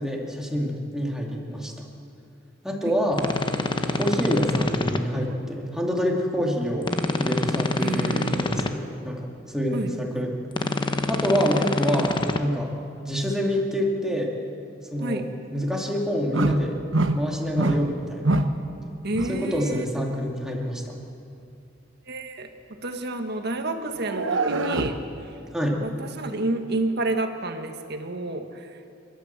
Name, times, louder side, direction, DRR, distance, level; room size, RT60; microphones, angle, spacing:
voice 1, 0.0-1.9 2.6-3.2 3.9-10.3 11.1-12.7 13.0-14.3 14.9-15.2 15.5-16.8 17.1-18.4 19.3-20.9 25.5-25.8, equal, 5° right, -1 dB, 2.6 m, -27 dB
sound 1, 3.1-5.0 6.8-8.7 10.5-12.4, left 2 dB, 25° left, 0.9 m, -26 dB
voice 2, 7.8-8.5 9.7-9.9 15.0-15.2 19.0-19.8 22.1-25.0 25.2-25.4 25.8-28.9, right 2 dB, 60° right, 6 dB, 1.6 m, -30 dB
sound 2, 16.3-16.7 16.9-17.2 17.6-17.9 18.2-18.6 19.1-19.4 24.0-25.0, right 2 dB, 90° right, 1.2 m, -24 dB
28.0 x 12.5 x 7.6 m, 2.6 s
head